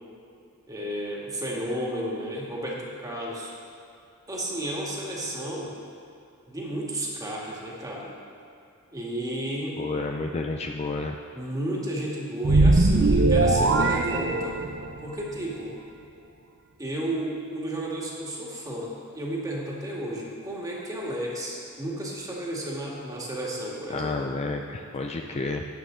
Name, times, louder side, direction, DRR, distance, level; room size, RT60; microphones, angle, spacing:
voice 1, 0.7-3.5 4.3-5.7 6.5-8.1 8.9-9.8 11.3-14.6 15.0-15.8 16.8-24.2, right 1 dB, 15° right, -3 dB, 1.8 m, -32 dB
voice 2, 9.8-11.2 23.9-25.6, left 3 dB, 30° left, 3 dB, 0.4 m, -30 dB
sound 1, 12.4-15.0, right 2 dB, 55° right, 0.6 m, -20 dB
13.0 x 8.9 x 3.8 m, 2.6 s
head